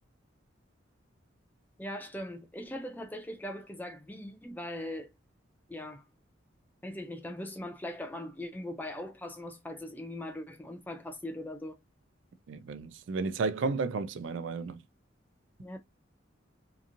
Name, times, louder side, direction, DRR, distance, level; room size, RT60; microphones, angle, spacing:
voice 1, 1.8-5.1 5.7-6.0 6.8-11.8 15.6-15.8, left 1 dB, 10° left, 0.5 m, -40 dB
voice 2, 12.5-14.8, right 4 dB, 65° right, 0.3 m, -32 dB
2.9 x 2.6 x 2.4 m
head